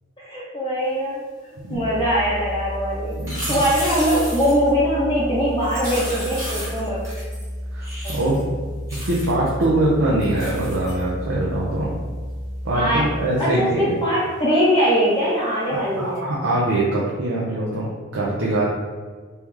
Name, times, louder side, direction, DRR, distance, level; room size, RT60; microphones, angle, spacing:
voice 1, 0.2-1.3 1.7-3.1 3.5-7.1 8.0-8.4 12.7-13.1 13.4-16.3, equal, 20° left, -9 dB, 0.7 m, -21 dB
sound 1, 1.7-13.2, equal, 40° right, 1.4 m, -32 dB
sound 2, 3.1-4.7 5.6-7.5 7.8-8.4 8.9-9.6 10.2-11.0 16.1-16.2, right 1 dB, 15° right, 1.3 m, -33 dB
voice 2, 3.2-3.6 7.7-8.4 8.9-11.9 12.6-13.9 16.0-18.7, right 1 dB, 65° right, -6 dB, 0.7 m, -23 dB
3.3 x 3.0 x 3.6 m, 1.5 s
head